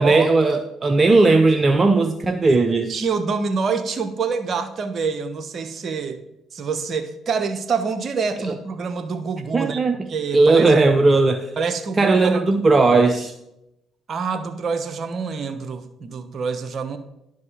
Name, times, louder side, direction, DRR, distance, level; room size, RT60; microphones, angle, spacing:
voice 1, 0.0-2.9 8.4-8.6 9.5-10.1 10.3-11.5 12.0-13.3, right 3 dB, 35° right, 8 dB, 0.7 m, -17 dB
voice 2, 2.9-6.2 6.5-9.8 10.1-10.7 11.6-12.4 14.1-17.0, right 5 dB, 50° right, 9 dB, 1.0 m, -26 dB
11.0 x 5.4 x 5.5 m, 0.86 s
hypercardioid pair, 55°, 0 cm